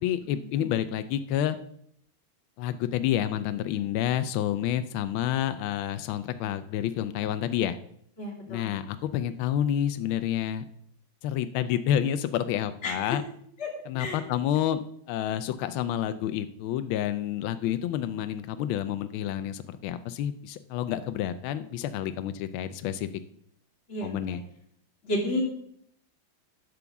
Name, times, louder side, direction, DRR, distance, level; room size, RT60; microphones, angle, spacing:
voice 1, 0.0-1.6 2.6-7.8 8.5-10.6 11.2-13.2 13.9-23.1 24.0-24.4, left 10 dB, 80° left, 11 dB, 1.4 m, -29 dB
voice 2, 8.2-8.7 12.8-13.2 13.6-13.7 14.0-14.2 17.6-17.7 23.9-24.4 25.0-25.4, left 2 dB, 35° left, -2 dB, 2.1 m, -32 dB
10.5 x 4.8 x 7.0 m, 0.69 s
omnidirectional pair, 2.3 m